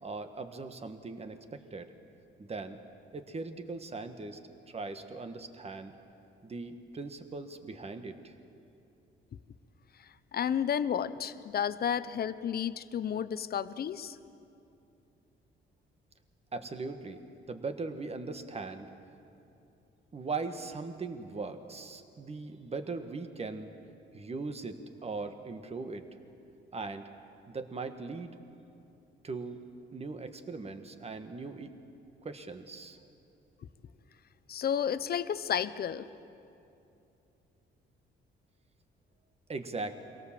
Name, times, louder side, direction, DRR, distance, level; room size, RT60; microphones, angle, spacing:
voice 1, 0.0-1.9 2.4-2.8 3.1-4.4 4.7-5.9 6.4-8.3 16.5-17.2 17.5-18.9 20.1-23.7 24.1-26.0 26.7-27.0 27.5-28.3 29.2-29.6 29.9-31.7 32.2-33.0 39.5-39.9, right 3 dB, 30° right, 8 dB, 1.6 m, -39 dB
voice 2, 10.3-14.1 34.5-36.0, left 8 dB, 50° left, 14 dB, 0.8 m, -31 dB
24.0 x 17.5 x 7.5 m, 2.7 s
cardioid pair, 90°, 20 cm